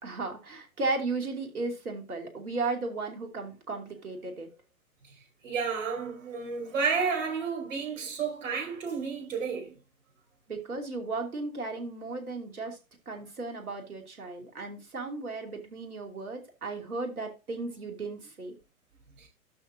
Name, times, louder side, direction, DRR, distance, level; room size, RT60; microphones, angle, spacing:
voice 1, 0.0-4.5 10.5-12.8 13.1-18.5, right 3 dB, 80° right, 2.9 m, -35 dB
voice 2, 5.4-9.8 19.2-19.3, right 5 dB, 55° right, 4.2 m, -31 dB
12.0 x 4.5 x 3.9 m
figure-of-eight pair, 110°, 44 cm